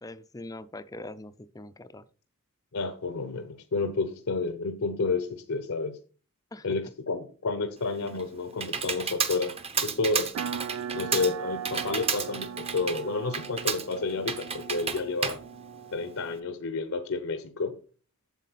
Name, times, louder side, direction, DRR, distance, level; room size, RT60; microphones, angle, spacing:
voice 1, 0.0-2.0 6.5-6.7, left 2 dB, 15° left, 0.5 m, -42 dB
voice 2, 2.7-6.0 6.6-10.3 10.9-15.4 15.9-17.8, left 3 dB, 75° left, 0.8 m, -30 dB
Computer keyboard, 7.8-16.4, right 5 dB, 30° right, 0.9 m, -33 dB
sound 1, 10.3-16.5, right 8 dB, 70° right, 0.3 m, -39 dB
8.2 x 7.2 x 4.0 m
head